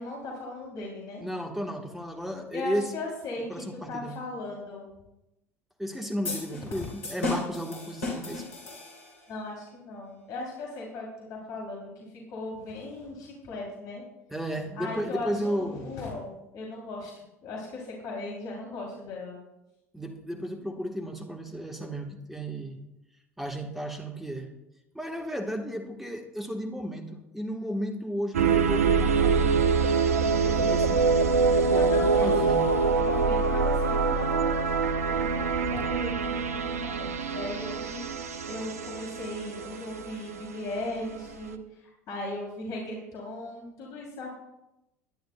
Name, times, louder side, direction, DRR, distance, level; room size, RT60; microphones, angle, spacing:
voice 1, 0.0-1.2 2.5-4.9 9.3-14.0 14.7-19.4 27.6-27.7 30.2-30.8 31.4-44.3, left 2 dB, 50° left, -2 dB, 2.9 m, -38 dB
voice 2, 1.2-2.9 3.5-4.2 5.8-8.4 14.3-15.9 19.9-22.8 23.4-24.5 24.9-29.6 30.6-31.0 31.7-32.6, equal, 5° right, 4 dB, 1.2 m, -34 dB
sound 1, 6.2-9.3, left 3 dB, 75° left, 3.2 m, -35 dB
sound 2, 28.3-41.3, right 4 dB, 80° right, 0.6 m, -25 dB
20.0 x 10.0 x 2.2 m, 0.91 s
figure-of-eight pair, 70°, 8 cm